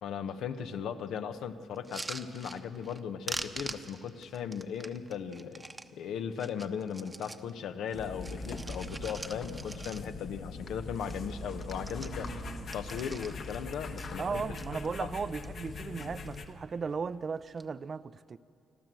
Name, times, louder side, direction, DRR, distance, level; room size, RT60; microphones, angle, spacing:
voice 1, 0.0-5.6 5.9-12.3 12.7-14.4 15.0-15.1, left 7 dB, 80° left, 0.9 m, -37 dB
sound 1, 1.8-3.0 3.3-5.9 6.3-7.5 7.9-10.3 10.7-10.8 11.0-11.3 11.6-13.6 14.0-14.7 15.2-15.7 16.0-16.5 17.4-17.7, right 2 dB, 15° right, 0.9 m, -44 dB
sound 2, 7.9-16.5, left 3 dB, 60° left, 1.4 m, -41 dB
voice 2, 12.2-12.7 14.2-18.4, right 5 dB, 40° right, 0.5 m, -36 dB
27.5 x 12.5 x 7.7 m
cardioid pair, 90°, 0 cm